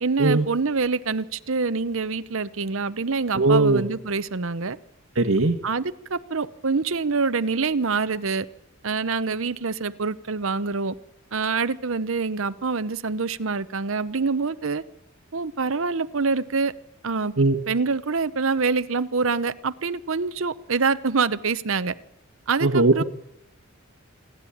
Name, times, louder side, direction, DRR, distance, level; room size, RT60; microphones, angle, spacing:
voice 1, 0.0-4.8 5.6-8.5 8.8-10.9 11.3-14.8 15.3-16.7 17.0-17.3 17.7-21.9 22.5-23.0, right 4 dB, 75° right, 13 dB, 0.8 m, -25 dB
voice 2, 3.3-3.8 5.2-5.6 17.4-17.6 22.6-23.0, right 2 dB, 90° right, 2 dB, 1.4 m, -19 dB
27.5 x 11.0 x 8.7 m, 0.77 s
head